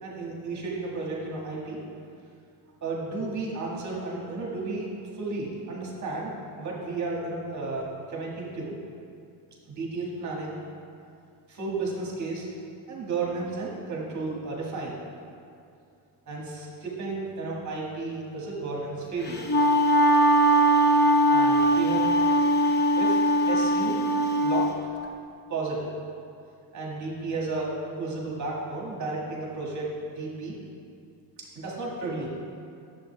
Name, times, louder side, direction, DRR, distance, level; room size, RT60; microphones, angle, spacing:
voice 1, 0.0-1.8 2.8-4.9 5.2-6.3 6.6-8.8 9.7-10.6 11.5-12.5 12.9-15.0 16.3-19.5 21.3-22.2 23.0-23.2 23.5-24.0 24.4-24.7 25.5-25.9 26.7-30.6 31.4-32.3, right 3 dB, 40° right, -4 dB, 1.8 m, -33 dB
Wind instrument woodwind instrument, 19.3-24.7, right 1 dB, 25° left, 0.6 m, -21 dB
10.5 x 7.6 x 3.3 m, 2.5 s
cardioid pair, 130°, 46 cm